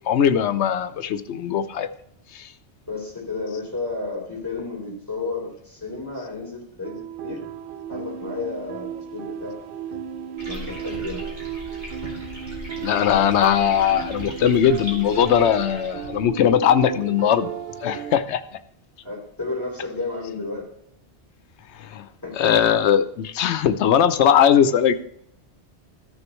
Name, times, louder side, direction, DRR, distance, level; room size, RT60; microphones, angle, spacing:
voice 1, 0.1-1.9 2.3-2.4 12.8-17.5 17.8-18.4 21.8-22.0 22.3-25.0, left 8 dB, 80° left, 13 dB, 0.9 m, -19 dB
voice 2, 2.9-7.4 7.9-9.6 10.5-11.2 19.0-20.6 22.2-22.3, left 3 dB, 15° left, -3 dB, 3.2 m, -32 dB
sound 1, 6.8-18.2, right 8 dB, 60° right, 0.6 m, -35 dB
sound 2, 10.4-16.3, equal, 40° right, 2.8 m, -38 dB
14.0 x 6.5 x 3.0 m, 0.71 s
omnidirectional pair, 1.1 m